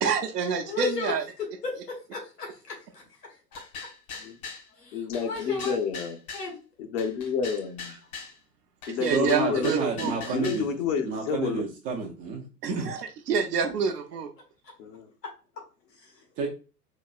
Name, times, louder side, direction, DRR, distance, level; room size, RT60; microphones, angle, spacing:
voice 1, 0.0-1.2 9.0-10.4 12.6-14.3, right 6 dB, 75° right, 0.7 m, -28 dB
voice 2, 0.7-1.1 1.4-1.7 2.1-3.0 3.5-3.6 4.8-5.7 6.3-6.6 16.0-16.1, left 5 dB, 80° left, 1.4 m, -35 dB
sound 1, 3.5-4.7 5.1-6.5 7.0-8.3 8.8-10.7, left 5 dB, 65° left, 1.6 m, -41 dB
voice 3, 4.9-6.2 6.8-7.9 8.9-11.6 14.8-15.1, left 6 dB, 45° left, 0.8 m, -30 dB
voice 4, 9.1-10.7 11.0-12.9 16.4-16.5, right 5 dB, 20° right, 0.4 m, -30 dB
4.0 x 2.9 x 2.4 m
figure-of-eight pair, 90°, 47 cm